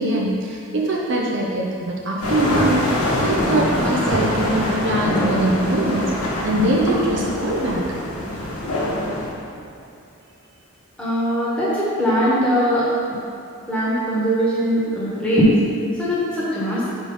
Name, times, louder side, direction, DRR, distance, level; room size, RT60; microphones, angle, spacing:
voice 1, 0.0-2.8 3.2-6.1 6.4-7.8 8.8-8.9, right 1 dB, 55° right, -2 dB, 0.6 m, -22 dB
sound 1, 2.2-9.3, left 1 dB, 80° left, 1.2 m, -24 dB
voice 2, 11.0-12.9 13.7-16.9, equal, 5° left, -9 dB, 1.3 m, -20 dB
4.8 x 4.1 x 5.3 m, 2.7 s
head